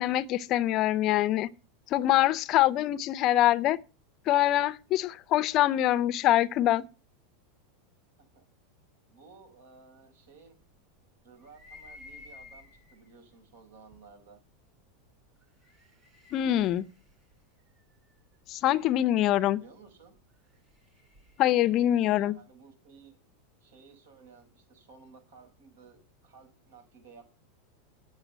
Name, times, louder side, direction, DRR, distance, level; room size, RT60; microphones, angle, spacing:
voice 1, 0.0-1.5 1.9-3.8 4.3-6.9 16.3-16.8 18.5-19.6 21.4-22.4, left 13 dB, 30° left, 0.5 m, -24 dB
voice 2, 9.1-10.6 11.2-14.4 19.5-20.2 21.9-23.2 23.6-27.2, right 4 dB, 85° right, 5.5 m, -55 dB
sound 1, 11.4-13.1 13.9-14.0 15.3-18.2 20.3-22.0, left 3 dB, 20° right, 2.6 m, -53 dB
9.1 x 6.8 x 8.0 m
supercardioid pair, 170°, 0 cm